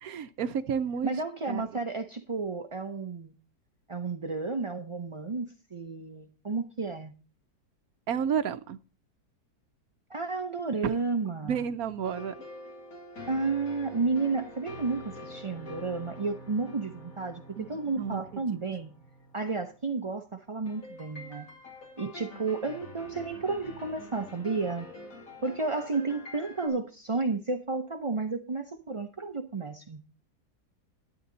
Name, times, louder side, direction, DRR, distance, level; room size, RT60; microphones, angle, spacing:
voice 1, 0.0-1.1 1.5-1.7 8.1-8.8 10.8-11.0 11.4-12.3 17.6-17.7 18.0-18.2, right 7 dB, 65° right, 12 dB, 1.1 m, -30 dB
voice 2, 1.0-3.3 3.9-7.1 10.1-11.6 13.3-18.9 19.3-21.5 22.0-24.9 25.4-30.0, right 4 dB, 40° right, 5 dB, 0.4 m, -32 dB
sound 1, 12.0-19.8 20.7-26.7, left 1 dB, 50° left, 3.1 m, -46 dB
12.5 x 9.5 x 3.9 m, 0.33 s
omnidirectional pair, 1.8 m